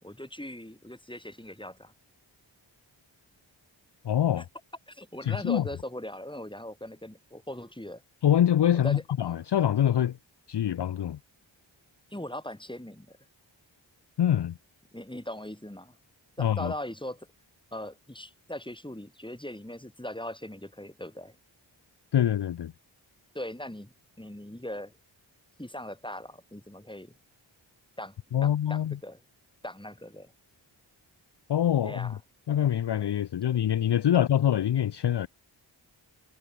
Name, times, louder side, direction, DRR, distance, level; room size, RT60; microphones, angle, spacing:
voice 1, 0.0-1.9 4.4-4.5 4.9-8.0 8.7-9.0 12.1-13.2 14.9-16.0 16.4-17.3 17.7-21.3 23.3-24.9 25.6-27.1 28.0-28.1 28.4-29.2 29.6-30.3 31.8-32.2, left 1 dB, 10° left, 4.9 m, -40 dB
voice 2, 4.0-4.4 5.2-5.6 8.2-10.2 10.5-11.2 14.2-14.6 16.4-16.7 22.1-22.7 28.3-29.0 31.5-32.2 32.5-35.3, left 10 dB, 60° left, 0.6 m, -25 dB
cardioid pair, 40°, 47 cm